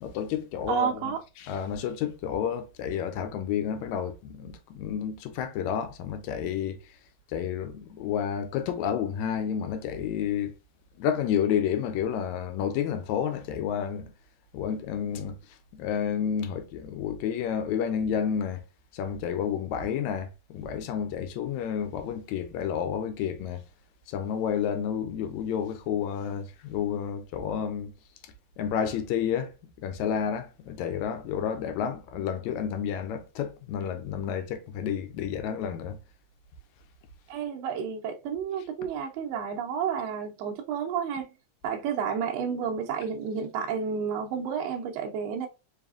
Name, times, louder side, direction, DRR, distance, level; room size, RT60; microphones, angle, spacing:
voice 1, 0.0-6.8 7.3-10.5 11.0-14.1 14.5-15.4 15.7-18.6 18.9-23.6 24.1-27.9 28.6-29.5 29.8-36.0, left 8 dB, 80° left, 1.9 m, -30 dB
voice 2, 0.7-1.2 31.8-31.9 37.3-41.3 41.6-45.5, right 7 dB, 75° right, 1.6 m, -31 dB
4.7 x 3.4 x 2.4 m
omnidirectional pair, 3.4 m